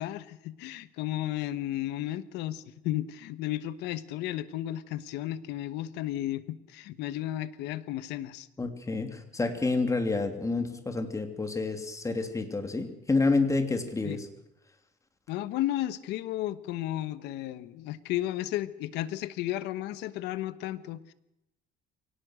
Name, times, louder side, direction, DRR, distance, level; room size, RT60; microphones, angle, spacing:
voice 1, 0.0-8.5 14.0-14.2 15.3-21.1, left 14 dB, 90° left, 15 dB, 1.2 m, -33 dB
voice 2, 8.6-14.3, left 3 dB, 20° left, 6 dB, 2.9 m, -29 dB
23.5 x 18.0 x 6.4 m, 0.85 s
cardioid pair, 110°, 17 cm